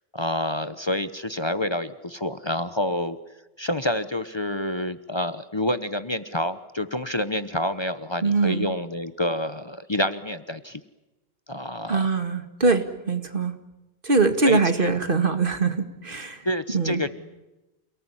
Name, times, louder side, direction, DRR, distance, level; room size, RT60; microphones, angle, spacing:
voice 1, 0.1-3.2 3.6-10.8 11.5-12.1 14.4-14.9 16.4-17.1, left 1 dB, 30° left, 12 dB, 1.0 m, -28 dB
voice 2, 8.2-8.7 11.9-13.5 14.0-16.5 16.7-17.0, right 4 dB, 60° right, 8 dB, 2.2 m, -23 dB
29.0 x 18.5 x 9.9 m, 1.0 s
omnidirectional pair, 1.0 m